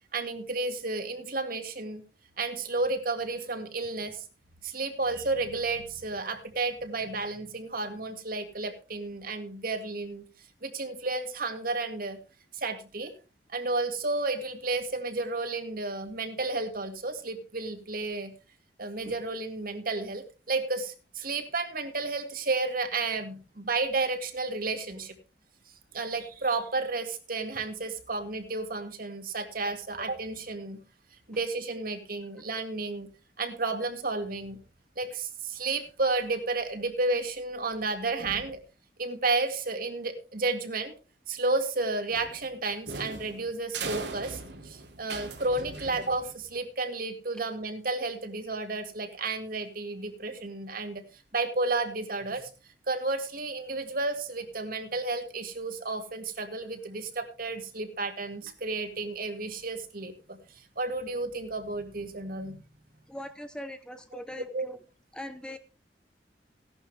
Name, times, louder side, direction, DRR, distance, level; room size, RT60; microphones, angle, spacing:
voice 1, 0.1-2.0 2.4-4.2 4.6-10.2 10.6-12.2 12.5-13.1 13.5-18.3 18.8-25.1 25.9-30.8 31.3-33.1 33.4-34.6 35.0-38.6 39.0-40.9 41.3-52.5 52.9-62.6 64.1-64.2 64.5-64.7, right 3 dB, 55° right, 6 dB, 2.1 m, -32 dB
sound 1, 42.1-46.6, right 3 dB, 80° right, 2.8 m, -39 dB
voice 2, 63.1-64.8 65.1-65.6, equal, 5° left, 9 dB, 0.8 m, -41 dB
16.0 x 11.5 x 3.4 m, 0.33 s
head